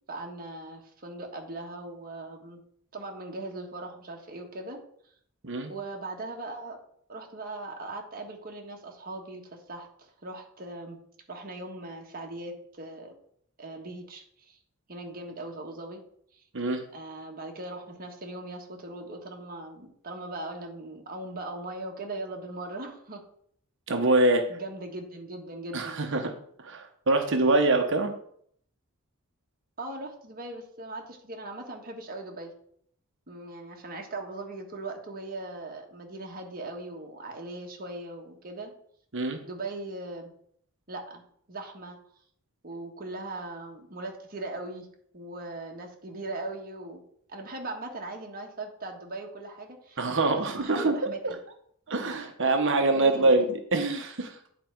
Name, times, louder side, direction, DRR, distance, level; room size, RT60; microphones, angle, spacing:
voice 1, 0.1-2.6 2.9-4.8 5.7-6.8 7.1-11.0 11.3-13.1 13.6-14.6 14.9-16.0 16.3-16.4 16.9-23.2 24.5-26.0 29.8-32.5 33.3-38.7 39.4-40.3 40.9-41.2 41.5-42.0 42.6-44.9 45.1-47.0 47.3-50.0 50.3-51.4 52.9-53.4, right 2 dB, 45° right, 1 dB, 1.5 m, -39 dB
voice 2, 23.9-24.4 25.7-26.3 26.6-28.1 39.1-39.4 50.0-50.9 51.2-51.3 51.9-54.3, right 2 dB, 60° right, 5 dB, 1.0 m, -24 dB
10.0 x 4.6 x 4.6 m, 0.64 s
head